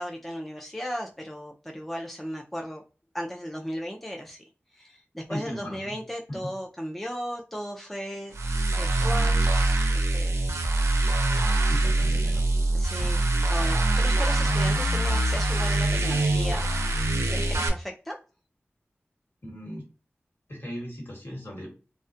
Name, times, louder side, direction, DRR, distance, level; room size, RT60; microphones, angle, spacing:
voice 1, 0.0-2.8 3.1-4.4 4.7-8.3 8.7-9.5 9.9-10.3 12.7-16.6 17.3-18.2, equal, 5° left, 1 dB, 0.3 m, -36 dB
voice 2, 5.3-5.9 6.3-6.4 11.7-12.5 13.0-13.1 19.4-19.8 20.5-21.7, equal, 55° left, -2 dB, 1.3 m, -37 dB
sound 1, 8.3-17.7, right 2 dB, 85° right, 0.4 m, -24 dB
2.3 x 2.1 x 2.5 m, 0.35 s
wide cardioid pair, 45°, 5 cm